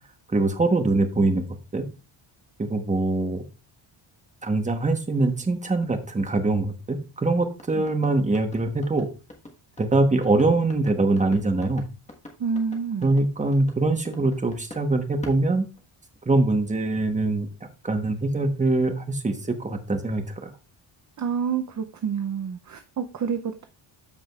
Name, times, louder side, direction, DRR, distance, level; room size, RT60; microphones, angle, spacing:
voice 1, 0.3-1.4 1.7-1.8 2.6-3.4 4.4-9.1 9.8-11.8 13.0-15.7 16.3-17.5 17.8-20.5, right 2 dB, 15° right, 6 dB, 1.0 m, -23 dB
sound 1, 7.6-14.9 15.2-16.3, left 2 dB, 15° left, 1.3 m, -44 dB
voice 2, 12.4-13.1 21.2-23.7, right 6 dB, 35° right, 7 dB, 0.6 m, -28 dB
13.5 x 4.9 x 2.3 m, 0.31 s
wide cardioid pair, 145°, 49 cm